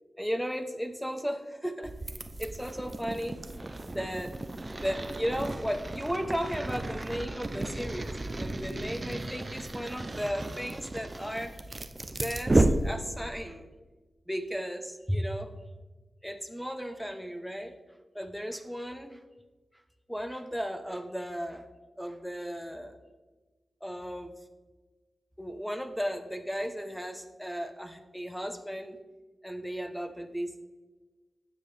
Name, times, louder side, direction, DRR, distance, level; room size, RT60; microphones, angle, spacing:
voice 1, 0.2-1.9 2.4-3.4 3.9-4.4 4.7-11.5 12.2-13.7 14.3-15.5 16.2-17.7 18.1-19.2 20.1-21.6 22.0-23.0 23.8-24.3 25.4-29.0 29.4-30.6, equal, ahead, 8 dB, 0.9 m, -35 dB
sound 1, 1.8-13.4, right 2 dB, 35° right, 0.6 m, -33 dB
9.8 x 7.5 x 3.4 m, 1.3 s
cardioid pair, 55°, 0 cm